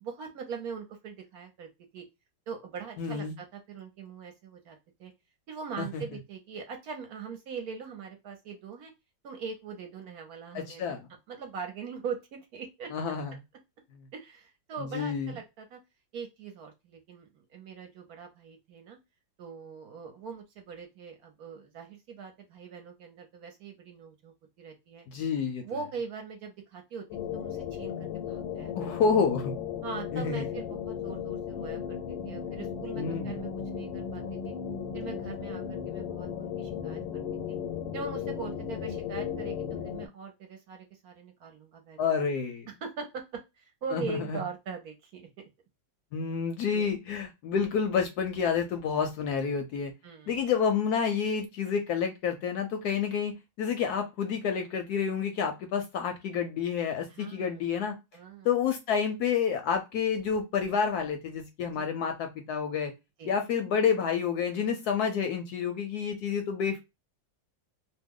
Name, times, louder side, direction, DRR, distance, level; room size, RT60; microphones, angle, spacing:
voice 1, 0.0-2.1 2.5-5.1 5.5-8.9 9.2-10.9 11.3-12.9 14.1-15.8 16.1-19.0 19.4-25.1 25.6-27.1 27.3-28.7 29.8-34.5 34.9-37.2 37.5-37.6 37.9-42.2 42.8-45.5 46.7-46.9 50.0-50.4 57.1-57.6 58.1-58.5 61.7-61.8 63.2-63.3, right 5 dB, 65° right, 4 dB, 1.1 m, -41 dB
voice 2, 3.0-3.3 5.8-6.0 10.5-11.1 12.9-13.3 14.8-15.3 25.1-25.6 28.7-29.5 30.1-30.5 32.9-33.3 42.0-42.7 43.9-44.4 46.1-49.9 50.3-58.0 58.4-62.9 63.2-66.8, left 6 dB, 70° left, 6 dB, 1.0 m, -29 dB
sound 1, 27.1-40.1, left 8 dB, 90° left, 1.3 m, -35 dB
2.9 x 2.1 x 3.5 m, 0.23 s
omnidirectional pair, 2.0 m